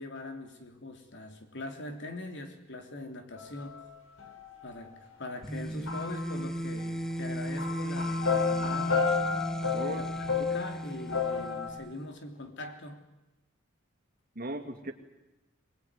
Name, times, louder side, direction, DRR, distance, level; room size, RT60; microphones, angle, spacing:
voice 1, 0.0-3.9 4.6-9.1 9.9-13.0, left 2 dB, 60° left, 3.1 m, -42 dB
sound 1, 3.3-3.9 4.2-5.2 5.6-11.7, left 5 dB, 80° left, 4.5 m, -32 dB
sound 2, 5.4-12.1, equal, 5° left, 0.8 m, -35 dB
voice 2, 14.3-14.9, right 1 dB, 45° right, 2.5 m, -37 dB
22.5 x 21.0 x 9.7 m
head